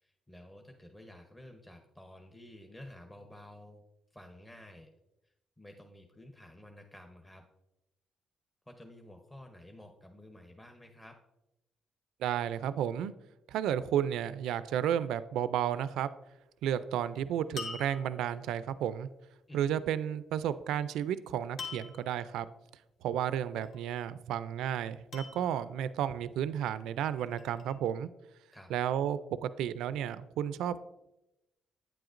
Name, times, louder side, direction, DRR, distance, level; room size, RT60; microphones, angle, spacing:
voice 1, 0.0-3.8 4.1-4.9 5.2-7.4 8.7-11.1 19.5-19.7 28.5-28.7, left 1 dB, 15° left, 3 dB, 0.8 m, -52 dB
voice 2, 12.2-13.1 13.5-16.1 16.6-19.1 19.5-22.5 23.0-28.1 28.7-30.8, right 10 dB, 85° right, 14 dB, 0.3 m, -32 dB
sound 1, 17.6-18.5 21.6-22.2 23.5-24.1 25.1-25.9 26.9-27.7, left 4 dB, 60° left, 1.1 m, -44 dB
9.0 x 7.8 x 2.5 m, 0.92 s
cardioid pair, 90°, 0 cm